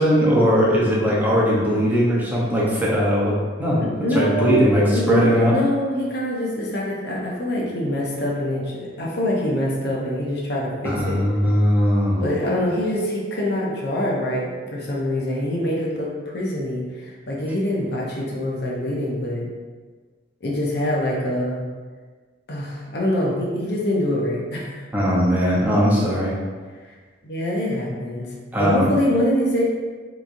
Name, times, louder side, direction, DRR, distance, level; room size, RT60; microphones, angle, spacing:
voice 1, 0.0-3.8 4.1-5.5 10.8-12.3 24.9-26.3 28.5-28.9, equal, 10° right, -6 dB, 0.7 m, -19 dB
voice 2, 3.8-11.2 12.2-19.4 20.4-21.6 22.5-24.8 26.8-26.9 27.2-28.3 28.6-29.6, left 1 dB, 60° left, -3 dB, 0.7 m, -24 dB
3.6 x 3.0 x 2.6 m, 1.5 s
head